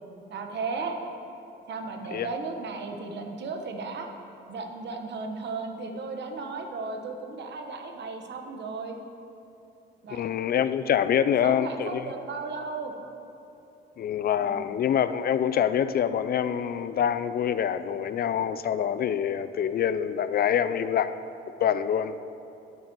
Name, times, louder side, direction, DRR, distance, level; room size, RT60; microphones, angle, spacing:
voice 1, 0.3-1.0 1.7-4.1 4.5-9.0 10.0-10.3 11.4-12.9 14.4-14.8, right 4 dB, 60° right, 4 dB, 1.1 m, -35 dB
voice 2, 10.1-12.1 14.0-21.2 21.6-22.2, left 9 dB, 50° left, 13 dB, 0.4 m, -25 dB
9.2 x 5.7 x 7.4 m, 2.8 s
cardioid pair, 90°, 20 cm